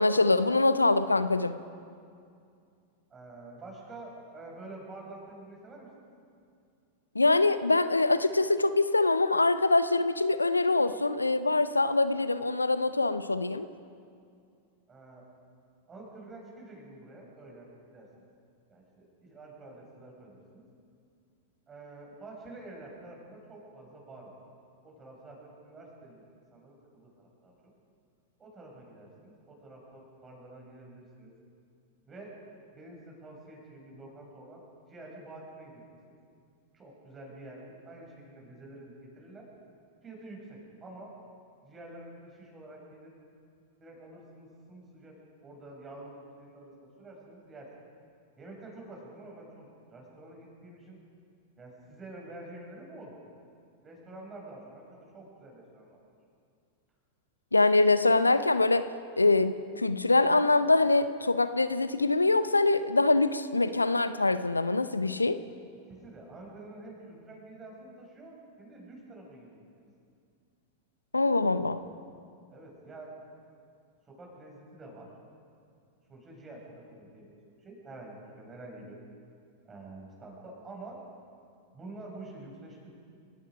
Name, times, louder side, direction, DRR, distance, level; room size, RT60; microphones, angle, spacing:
voice 1, 0.0-1.6 7.1-13.7 57.5-58.9 59.2-65.4 71.1-71.8, left 2 dB, 80° left, 13 dB, 0.6 m, -24 dB
voice 2, 3.1-6.1 14.9-15.2 15.9-18.1 18.7-20.6 21.7-24.4 24.8-26.2 26.5-27.5 28.4-31.3 32.1-32.3 32.7-34.6 34.9-35.8 36.1-36.2 36.7-39.5 40.0-41.1 41.6-43.1 43.8-46.7 47.0-47.7 48.4-51.0 51.6-53.2 53.8-56.0 65.9-69.6 72.5-73.1 74.1-75.1 76.1-77.3 77.6-79.0 79.6-81.0 81.7-82.9, right 2 dB, 20° right, -1 dB, 7.0 m, -48 dB
30.0 x 17.0 x 5.2 m, 2.4 s
figure-of-eight pair, 90°, 0 cm